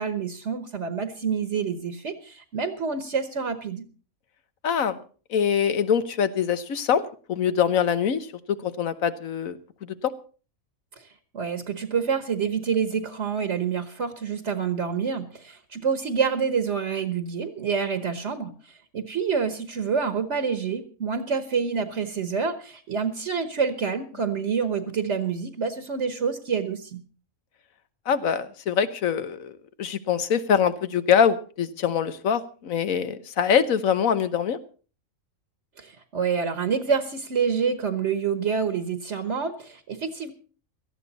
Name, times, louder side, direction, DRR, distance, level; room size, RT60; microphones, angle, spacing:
voice 1, 0.0-3.8 11.3-18.5 18.9-27.0 35.8-40.3, right 6 dB, 60° right, 9 dB, 1.4 m, -27 dB
voice 2, 4.6-5.0 5.3-7.0 7.3-9.6 10.0-10.1 28.1-29.5 29.8-34.6, left 7 dB, 80° left, 12 dB, 1.4 m, -24 dB
18.0 x 13.5 x 4.1 m, 0.38 s
omnidirectional pair, 1.4 m